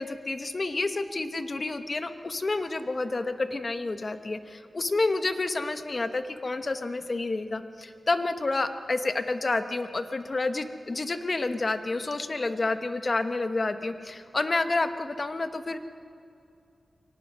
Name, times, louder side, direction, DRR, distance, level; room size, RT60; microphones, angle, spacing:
voice 1, 0.0-15.8, left 3 dB, 45° left, 9 dB, 1.1 m, -29 dB
23.5 x 18.5 x 6.2 m, 2.5 s
wide cardioid pair, 80°, 0 cm